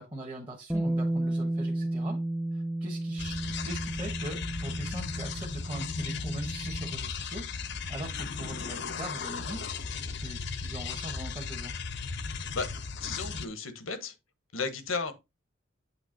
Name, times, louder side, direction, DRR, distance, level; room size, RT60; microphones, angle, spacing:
voice 1, 0.0-2.2 2.5-9.7 10.2-11.7, right 1 dB, 25° right, 1.4 m, -41 dB
Bass guitar, 0.7-6.9, right 1 dB, ahead, 0.4 m, -33 dB
sound 1, 3.2-13.4, left 5 dB, 55° left, 0.7 m, -36 dB
voice 2, 12.3-12.7 13.0-14.2 14.5-15.1, left 4 dB, 90° left, 1.4 m, -34 dB
8.3 x 3.2 x 5.2 m
head